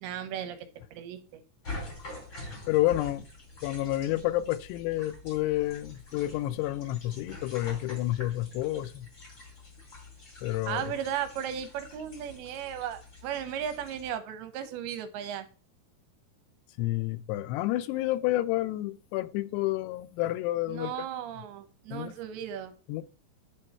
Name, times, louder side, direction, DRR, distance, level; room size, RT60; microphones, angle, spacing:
voice 1, 0.0-1.4 10.7-15.5 20.7-22.7, right 9 dB, 80° right, 2.7 m, -36 dB
sound 1, 1.6-14.1, left 2 dB, 30° left, 4.0 m, -46 dB
voice 2, 2.7-3.3 3.6-9.1 10.4-10.9 16.8-21.0 21.9-22.1 22.9-23.0, left 15 dB, 85° left, 2.7 m, -29 dB
9.8 x 4.5 x 4.3 m
omnidirectional pair, 4.7 m